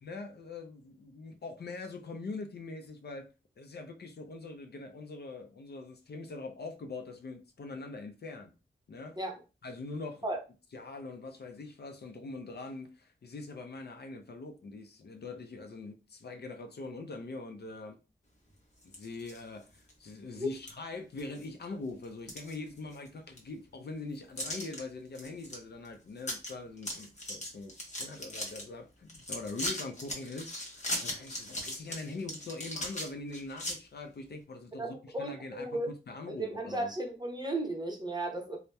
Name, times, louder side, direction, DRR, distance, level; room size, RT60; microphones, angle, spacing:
voice 1, 0.0-3.3 3.6-8.5 8.9-9.2 9.6-10.2 10.7-18.0 18.8-35.8 36.1-36.9, left 3 dB, 60° left, 0.5 m, -43 dB
sound 1, 18.8-19.4 19.9-20.0 20.7-20.8 21.2-21.6 22.0-23.1 23.4-23.5 24.4-24.8 25.2-25.6 25.9-26.0 26.2-26.5 26.8-28.6 29.1-33.7, left 1 dB, 35° left, 0.9 m, -38 dB
voice 2, 34.8-35.9 36.3-38.6, right 1 dB, 20° right, 0.7 m, -35 dB
2.7 x 2.0 x 2.2 m
wide cardioid pair, 65°, 19 cm